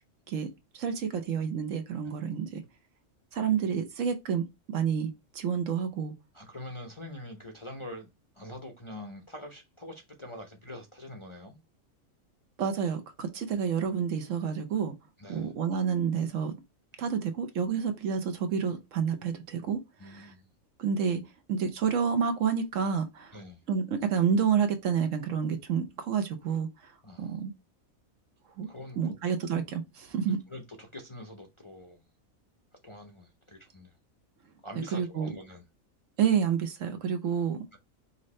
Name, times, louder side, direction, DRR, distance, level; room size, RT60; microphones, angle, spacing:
voice 1, 0.7-2.6 3.3-6.1 12.6-14.9 15.3-16.5 17.0-20.3 20.8-21.2 21.5-23.4 23.7-26.9 27.2-27.5 28.6-28.7 29.0-30.4 34.8-35.3 36.2-37.6, right 7 dB, 70° right, 1.2 m, -29 dB
voice 2, 6.3-8.1 8.3-11.6 15.2-15.5 20.0-20.5 23.3-23.6 27.0-27.4 28.7-29.1 30.2-32.1 32.8-33.9 34.6-35.6 37.7-37.8, left 1 dB, 30° left, 0.6 m, -44 dB
5.5 x 2.6 x 3.1 m
omnidirectional pair, 1.4 m